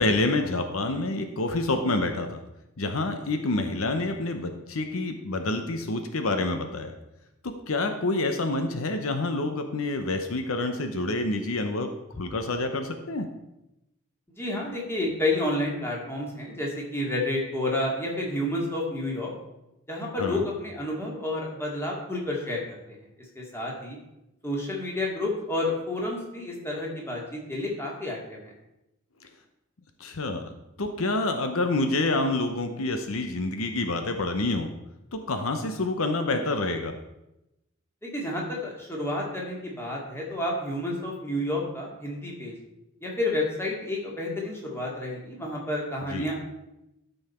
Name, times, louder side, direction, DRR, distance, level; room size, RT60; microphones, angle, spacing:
voice 1, 0.0-2.4 2.8-6.9 7.4-11.9 12.2-13.3 20.2-20.4 30.0-34.7 35.1-36.9 46.1-46.3, left 2 dB, 75° left, 6 dB, 0.8 m, -27 dB
voice 2, 14.4-19.3 19.9-23.0 23.4-24.0 24.4-28.5 38.0-42.6 43.0-46.4, left 1 dB, 10° left, -3 dB, 2.2 m, -30 dB
13.0 x 5.6 x 4.3 m, 0.90 s
head